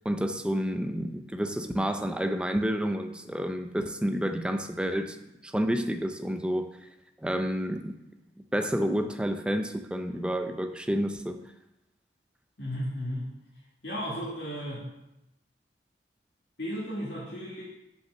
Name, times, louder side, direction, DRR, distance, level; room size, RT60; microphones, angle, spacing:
voice 1, 0.0-5.2 5.4-6.7 7.2-7.9 8.5-11.4, equal, 5° right, 8 dB, 0.4 m, -29 dB
voice 2, 12.6-13.3 13.8-14.9 16.6-17.6, equal, 75° left, -6 dB, 1.9 m, -34 dB
5.8 x 5.6 x 6.1 m, 0.90 s
head